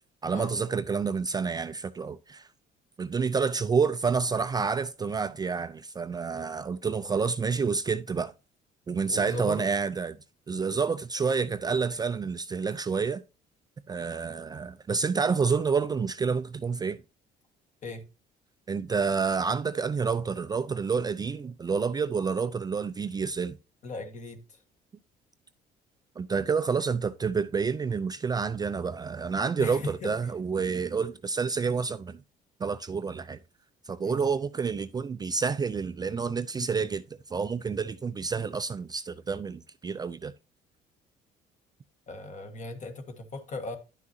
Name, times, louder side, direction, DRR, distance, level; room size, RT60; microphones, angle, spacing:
voice 1, 0.2-2.5 3.0-8.3 8.9-10.2 10.5-13.2 13.9-17.0 18.7-23.5 26.2-32.2 32.6-33.4 33.9-40.3, right 5 dB, 25° right, 0.4 m, -29 dB
voice 2, 9.1-9.7 17.8-18.0 23.8-24.6 29.6-30.1 34.0-34.2 42.1-43.8, left 2 dB, 45° left, 1.6 m, -37 dB
10.5 x 6.0 x 2.7 m
cardioid pair, 110°, 17 cm